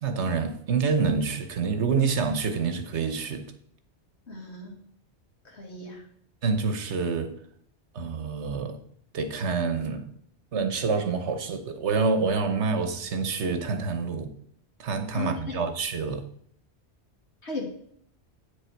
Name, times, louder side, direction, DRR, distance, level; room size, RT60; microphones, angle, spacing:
voice 1, 0.0-3.4 6.4-7.3 7.9-8.8 9.1-10.1 10.5-14.3 14.8-16.2, right 5 dB, 85° right, 1.3 m, -27 dB
voice 2, 4.3-4.8 5.4-6.1 15.1-15.7 17.4-17.7, left 3 dB, 70° left, 2.2 m, -36 dB
9.1 x 6.5 x 4.5 m
omnidirectional pair, 1.1 m